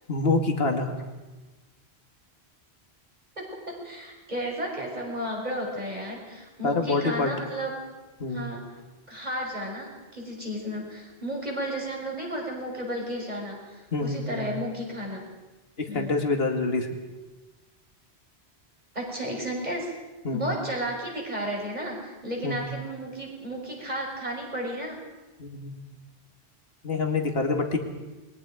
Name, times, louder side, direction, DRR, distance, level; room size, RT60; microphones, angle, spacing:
voice 1, 0.1-0.9 6.6-7.3 8.2-8.5 13.9-14.5 15.9-16.9 20.2-20.5 22.4-22.6 25.4-25.8 26.8-27.8, left 3 dB, 65° left, 4 dB, 2.4 m, -26 dB
voice 2, 3.8-7.7 8.3-8.7 9.1-15.2 15.9-16.1 18.9-20.0 20.3-25.0, equal, 40° right, -1 dB, 5.9 m, -33 dB
28.0 x 22.0 x 5.1 m, 1.2 s
omnidirectional pair, 1.1 m